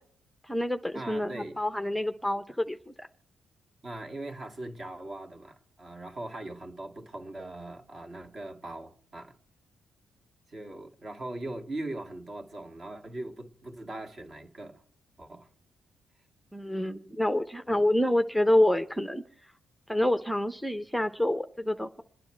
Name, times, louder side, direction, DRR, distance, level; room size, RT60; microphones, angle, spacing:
voice 1, 0.4-3.1 16.5-19.2 19.9-22.0, left 1 dB, ahead, 0.7 m, -27 dB
voice 2, 0.9-1.6 3.8-9.4 10.5-14.8 15.2-15.5 17.1-17.2 17.7-17.9, right 2 dB, 40° right, 1.9 m, -40 dB
27.0 x 9.6 x 4.4 m
cardioid pair, 85°, 0 cm